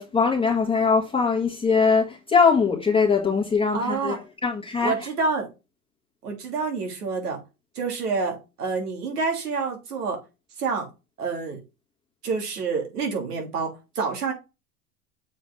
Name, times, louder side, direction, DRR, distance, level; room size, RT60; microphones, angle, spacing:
voice 1, 0.0-4.9, left 5 dB, 10° left, 1.7 m, -21 dB
voice 2, 3.7-4.2 4.8-5.5 6.2-7.4 7.7-10.2 10.6-10.9 11.2-11.6 12.2-14.3, right 4 dB, 85° right, 3.0 m, -28 dB
7.1 x 4.9 x 3.6 m
hypercardioid pair, 90°, 45 cm